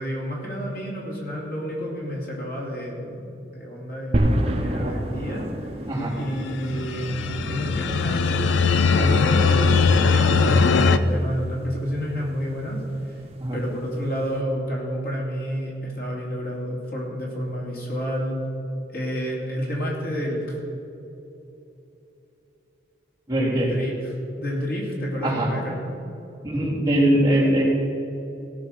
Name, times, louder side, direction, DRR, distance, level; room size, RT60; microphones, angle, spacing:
voice 1, 0.0-5.7 6.1-7.2 7.5-8.5 8.9-13.2 13.5-18.4 18.9-20.6 23.6-26.0, equal, 50° left, -3 dB, 2.8 m, -30 dB
sound 1, 4.1-14.4, equal, 35° right, 1.0 m, -31 dB
sound 2, 6.4-11.0, left 4 dB, 80° left, 0.5 m, -20 dB
voice 2, 23.3-23.7 25.2-25.5 26.4-27.6, right 1 dB, 20° right, -7 dB, 3.5 m, -21 dB
17.0 x 6.4 x 6.7 m, 2.9 s
head